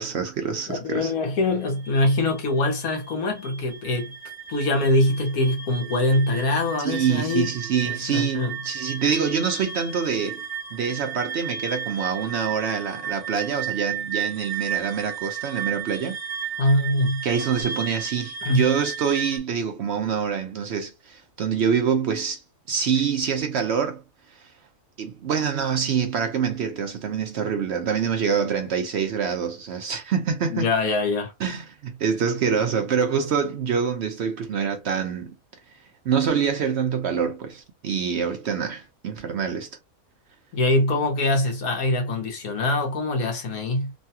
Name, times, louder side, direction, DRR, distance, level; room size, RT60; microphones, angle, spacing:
voice 1, 0.0-1.1 6.8-10.4 10.7-16.2 17.2-22.4 22.7-24.0 25.0-30.7 31.4-35.3 36.1-39.7, right 7 dB, 65° right, 0.7 m, -25 dB
voice 2, 0.7-4.2 4.5-7.5 7.8-8.5 16.6-17.3 18.4-18.7 30.5-31.3 40.5-43.9, left 2 dB, 75° left, 1.4 m, -23 dB
sound 1, 1.5-19.4, right 8 dB, 25° right, 1.3 m, -34 dB
3.1 x 2.2 x 2.7 m
omnidirectional pair, 1.5 m